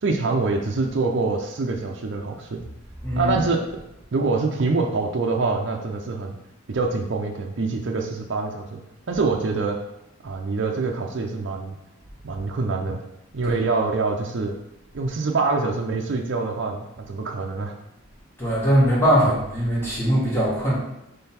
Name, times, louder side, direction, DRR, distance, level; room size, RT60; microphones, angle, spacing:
voice 1, 0.0-2.6 3.2-3.6 4.1-6.4 6.7-8.8 9.1-9.8 10.2-11.7 12.2-13.0 13.3-14.6 14.9-17.7, right 3 dB, 55° right, 2 dB, 0.5 m, -25 dB
voice 2, 3.0-3.4 13.4-13.5 18.4-20.7, equal, 10° left, -8 dB, 1.4 m, -21 dB
3.8 x 3.3 x 4.2 m, 0.86 s
head